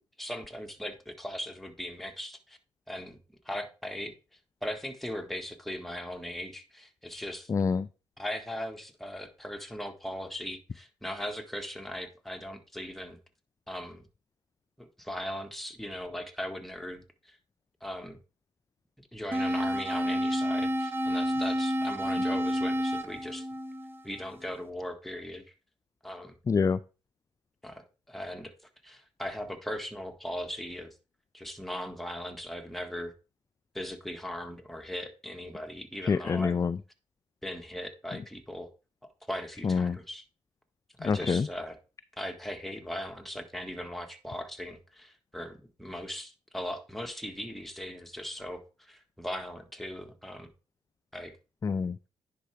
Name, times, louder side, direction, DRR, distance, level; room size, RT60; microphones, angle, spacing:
voice 1, 0.2-2.6 2.9-3.2 3.4-4.1 4.6-7.5 8.2-13.2 13.7-14.0 14.8-17.4 17.8-18.2 19.1-23.5 24.0-25.4 26.0-26.4 27.6-28.6 28.8-30.9 31.3-33.1 33.7-36.5 37.4-38.7 39.0-40.2 41.0-41.8 42.2-50.5 51.1-51.4, equal, ahead, 1.6 m, -39 dB
voice 2, 7.5-7.9 26.5-26.8 36.0-36.8 39.6-40.0 41.1-41.5 51.6-52.0, left 5 dB, 25° left, 0.3 m, -26 dB
sound 1, 19.3-24.4, equal, 15° right, 1.1 m, -29 dB
10.0 x 4.7 x 3.4 m
hypercardioid pair, 50°, 13 cm